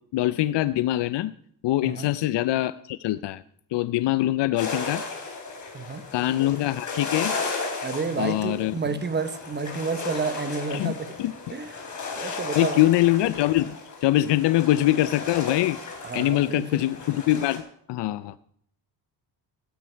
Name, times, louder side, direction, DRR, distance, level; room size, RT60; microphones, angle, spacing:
voice 1, 0.1-1.3 1.6-3.4 3.7-5.0 6.1-7.3 8.2-8.7 10.7-10.9 11.2-11.3 12.2-15.8 16.1-18.3, left 15 dB, 75° left, 16 dB, 0.6 m, -23 dB
voice 2, 1.8-2.1 5.7-6.0 7.8-11.2 11.5-11.7 12.0-12.8 16.0-16.8, right 5 dB, 25° right, 12 dB, 1.1 m, -30 dB
sound 1, 4.6-17.6, left 4 dB, 45° left, 4.2 m, -35 dB
16.5 x 13.0 x 4.5 m, 0.66 s
cardioid pair, 135°, 42 cm